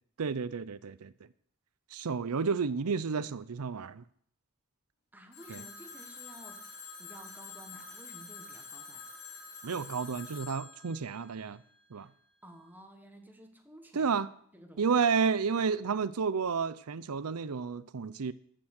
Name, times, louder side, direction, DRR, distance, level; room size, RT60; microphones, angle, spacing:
voice 1, 0.2-1.1 1.9-4.0 5.5-5.6 9.6-11.6 11.9-12.1 13.9-14.3 14.8-18.3, right 5 dB, 75° right, 0.6 m, -31 dB
voice 2, 5.1-6.7 7.0-9.1 11.9-12.1 12.4-14.1 14.5-14.9, equal, 10° right, 1.4 m, -53 dB
Telephone, 5.3-12.1, left 5 dB, 50° left, 3.2 m, -47 dB
14.0 x 6.2 x 6.5 m
head